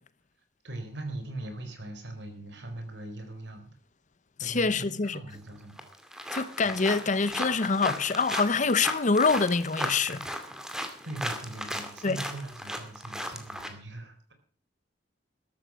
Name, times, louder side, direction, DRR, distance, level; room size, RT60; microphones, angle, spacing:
voice 1, 0.6-3.8 4.4-5.8 6.6-6.8 11.0-14.3, right 2 dB, 65° right, 4.1 m, -40 dB
voice 2, 4.4-5.2 6.3-10.3 12.0-12.2, left 4 dB, 45° left, 0.8 m, -25 dB
sound 1, 5.3-5.4 5.8-13.7, equal, 5° right, 2.3 m, -36 dB
14.0 x 13.0 x 6.2 m
head